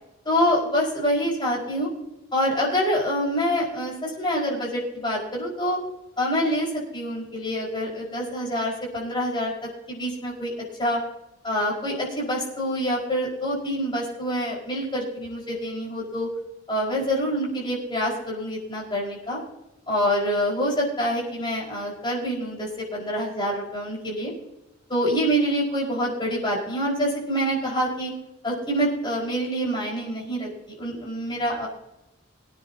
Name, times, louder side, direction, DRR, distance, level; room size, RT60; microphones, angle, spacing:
voice 1, 0.3-1.9 2.3-5.8 6.2-9.5 9.9-10.5 10.8-11.0 11.4-16.3 16.7-19.4 19.9-24.3 24.9-28.1 28.4-30.5 30.8-31.7, equal, 25° left, -4 dB, 5.1 m, -26 dB
23.0 x 9.8 x 2.9 m, 0.93 s
head